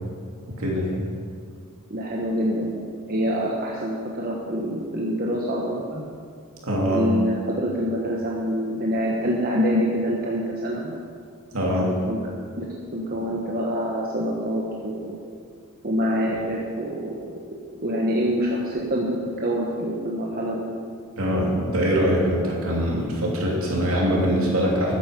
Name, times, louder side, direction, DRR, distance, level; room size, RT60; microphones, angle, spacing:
voice 1, 0.6-0.9 6.6-7.0 11.5-11.9 21.2-24.9, equal, 70° right, -3 dB, 3.0 m, -23 dB
voice 2, 1.9-6.0 6.9-10.9 11.8-12.2 12.5-12.7 12.9-15.2 15.8-17.3 17.8-20.6, equal, 45° right, -3 dB, 1.3 m, -26 dB
13.5 x 9.5 x 5.3 m, 2.2 s
head